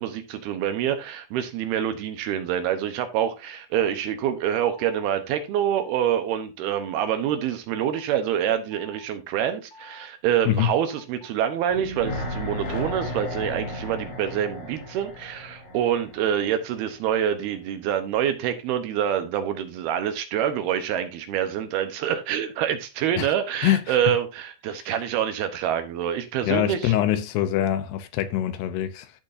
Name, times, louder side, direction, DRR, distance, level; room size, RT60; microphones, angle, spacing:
voice 1, 0.0-26.9, right 10 dB, 75° right, 2.7 m, -26 dB
sound 1, 4.7-5.1 5.7-6.1 6.7-7.1 7.7-8.0 8.7-9.1 9.7-10.1 10.7-15.8, left 1 dB, 35° left, 2.6 m, -48 dB
sound 2, 11.7-16.8 17.1-17.2, left 1 dB, 50° left, 5.1 m, -34 dB
voice 2, 23.6-24.0 24.7-24.9 26.4-29.1, left 11 dB, 80° left, 2.6 m, -24 dB
14.5 x 6.0 x 2.7 m
omnidirectional pair, 5.0 m